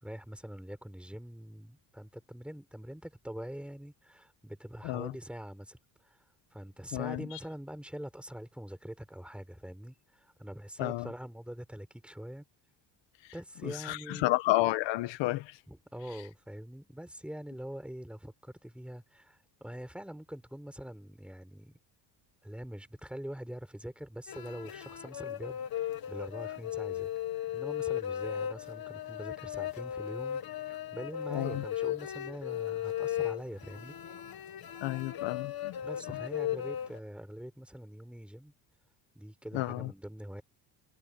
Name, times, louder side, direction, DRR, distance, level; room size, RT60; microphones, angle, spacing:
voice 1, 0.0-6.2 6.5-12.4 13.3-14.3 15.7-21.8 22.4-27.1 27.5-34.0 35.8-38.5 39.1-40.4, equal, ahead, 4.7 m, -44 dB
voice 2, 6.9-7.3 10.8-11.1 13.6-15.6 31.3-31.6 34.8-35.8 36.1-36.2 39.5-39.9, left 18 dB, 80° left, 1.6 m, -31 dB
sound 1, 24.3-37.0, left 11 dB, 55° left, 2.2 m, -36 dB
supercardioid pair, 80°, 44 cm